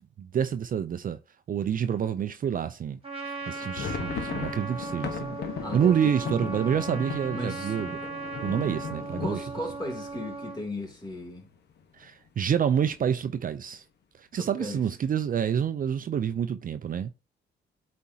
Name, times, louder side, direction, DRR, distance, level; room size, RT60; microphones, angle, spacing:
voice 1, 0.2-1.2 1.5-5.4 5.7-8.0 8.4-9.4 12.0-13.8 14.2-17.1, right 8 dB, 45° right, 0.5 m, -28 dB
Trumpet, 3.0-10.6, right 3 dB, 30° right, 1.8 m, -37 dB
sound 1, 3.4-11.1 11.5-11.6 11.8-12.1 12.6-13.1, left 6 dB, 60° left, 1.2 m, -38 dB
voice 2, 3.6-4.1 5.6-6.6 7.3-7.7 8.0-8.1 9.2-11.5 14.3-14.8, left 1 dB, 20° left, 2.7 m, -37 dB
8.3 x 4.3 x 2.8 m
cardioid pair, 90°, 20 cm